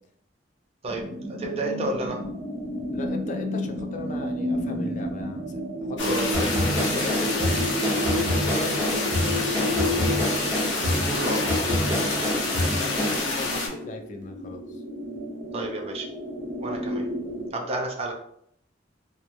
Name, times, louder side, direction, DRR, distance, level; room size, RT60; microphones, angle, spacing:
sound 1, 0.9-17.5, equal, 80° right, 0.6 m, -32 dB
voice 1, 1.4-2.2 6.0-6.2 10.9-11.4 15.5-16.1 16.6-17.1 17.5-18.1, right 2 dB, 35° right, 2 dB, 0.4 m, -30 dB
voice 2, 2.9-5.5 5.9-7.7 8.4-10.2 12.8-14.6, left 3 dB, 40° left, 4 dB, 0.3 m, -36 dB
sound 2, 6.0-13.7, left 3 dB, 75° left, 0.7 m, -29 dB
sound 3, 6.3-13.2, left 1 dB, 15° right, 0.9 m, -27 dB
3.0 x 2.2 x 2.5 m, 0.68 s
head